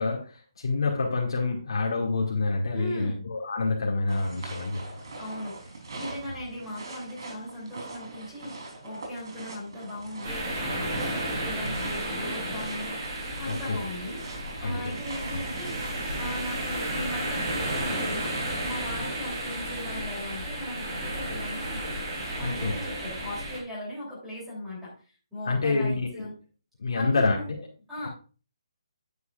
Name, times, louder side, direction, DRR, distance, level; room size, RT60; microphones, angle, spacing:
voice 1, 0.0-5.0 13.5-13.8 14.6-15.0 15.3-15.4 21.2-21.3 22.4-22.8 25.5-26.3 26.8-27.4, left 3 dB, 60° left, -2 dB, 2.3 m, -27 dB
voice 2, 2.7-3.3 5.2-14.2 14.6-18.3 18.6-21.9 22.4-26.3 26.9-27.5 27.9-28.1, left 1 dB, 5° right, -7 dB, 3.4 m, -38 dB
sound 1, 4.1-16.7, right 2 dB, 55° right, 3.8 m, -42 dB
sound 2, 10.2-23.6, right 1 dB, 25° right, 4.1 m, -33 dB
9.5 x 9.2 x 2.5 m, 0.36 s
hypercardioid pair, 175°, 3 cm